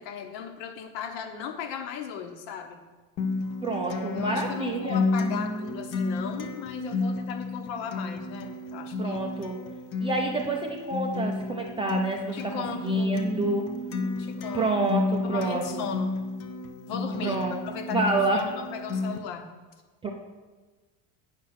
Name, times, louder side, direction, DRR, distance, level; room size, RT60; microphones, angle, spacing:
voice 1, 0.0-2.8 4.1-9.2 12.3-13.2 14.2-14.8 15.2-16.2 16.9-19.5, left 7 dB, 65° left, 7 dB, 1.3 m, -37 dB
Acoustic guitar, 3.2-19.2, left 3 dB, 30° left, 0.7 m, -31 dB
voice 2, 3.6-5.0 9.0-9.6 10.0-13.7 14.5-15.8 17.2-17.6 17.9-18.5 20.0-20.1, right 2 dB, 10° right, 0 dB, 0.4 m, -28 dB
9.4 x 5.8 x 6.5 m, 1.3 s
cardioid pair, 160°, 48 cm